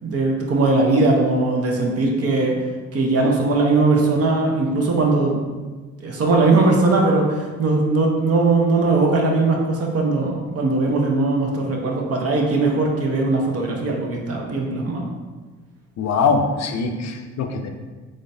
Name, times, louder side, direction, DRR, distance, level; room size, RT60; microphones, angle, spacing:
voice 1, 0.0-2.6 2.9-5.4 6.0-15.1, right 3 dB, 50° right, 0 dB, 0.8 m, -19 dB
voice 2, 16.0-17.7, left 4 dB, 60° left, 4 dB, 0.5 m, -22 dB
3.8 x 3.3 x 2.7 m, 1.3 s
cardioid pair, 90°, 30 cm